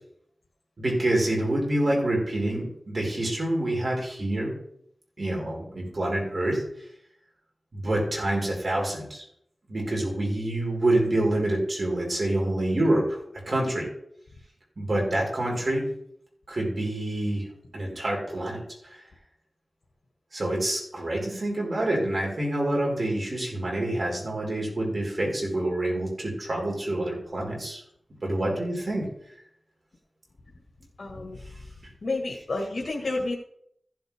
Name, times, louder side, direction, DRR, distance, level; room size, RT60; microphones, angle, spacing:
voice 1, 0.8-4.5 5.2-6.6 7.7-9.2 9.7-13.2 13.5-13.9 14.8-15.8 16.5-17.4 17.7-19.0 20.3-27.8 28.2-29.1, right 1 dB, 55° right, -2 dB, 4.8 m, -27 dB
voice 2, 31.0-31.4 32.0-33.3, left 2 dB, 65° left, 0 dB, 1.7 m, -30 dB
15.0 x 7.8 x 3.6 m, 0.71 s
wide cardioid pair, 60°, 0 cm